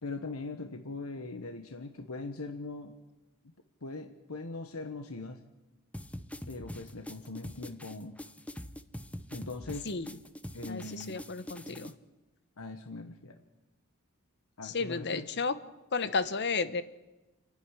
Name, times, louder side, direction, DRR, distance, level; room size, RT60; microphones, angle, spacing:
voice 1, 0.0-2.9 3.8-5.4 6.5-8.2 9.3-9.9 10.5-11.2 12.6-13.4 14.6-15.3, left 3 dB, 75° left, 6 dB, 1.3 m, -41 dB
sound 1, 5.9-11.9, left 1 dB, 5° left, 0.7 m, -44 dB
voice 2, 9.8-10.2 10.7-11.9 14.6-15.6 15.9-16.8, left 4 dB, 55° left, 13 dB, 1.0 m, -32 dB
28.0 x 10.5 x 9.9 m, 1.1 s
head